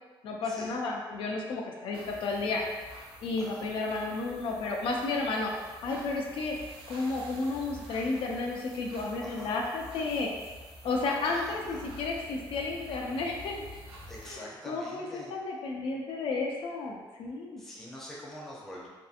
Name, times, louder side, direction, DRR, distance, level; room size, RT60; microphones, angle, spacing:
voice 1, 0.2-2.6 3.2-5.5 5.8-6.5 6.9-10.3 10.8-13.7 14.2-17.6, left 3 dB, 70° left, 0 dB, 0.4 m, -32 dB
sound 1, 1.9-14.3, equal, 70° right, 0.5 m, -49 dB
voice 2, 9.2-9.5 11.2-11.9 14.1-15.3 17.6-18.9, equal, 5° left, -5 dB, 0.5 m, -45 dB
2.6 x 2.4 x 2.4 m, 1.3 s
cardioid pair, 155°, 9 cm